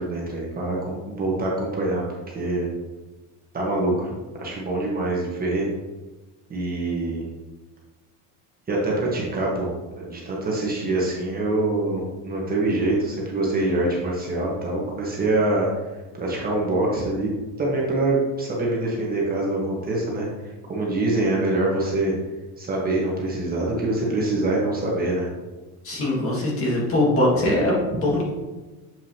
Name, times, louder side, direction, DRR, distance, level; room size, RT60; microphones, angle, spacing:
voice 1, 0.0-2.7 3.5-5.7 6.5-7.2 8.7-9.7 10.0-15.7 16.1-17.3 17.6-22.1 22.6-25.3 27.3-27.6, right 2 dB, 25° right, -3 dB, 1.3 m, -25 dB
voice 2, 25.8-28.2, left 1 dB, 35° left, -3 dB, 2.0 m, -22 dB
7.5 x 4.8 x 2.9 m, 1.2 s
cardioid pair, 140°, 37 cm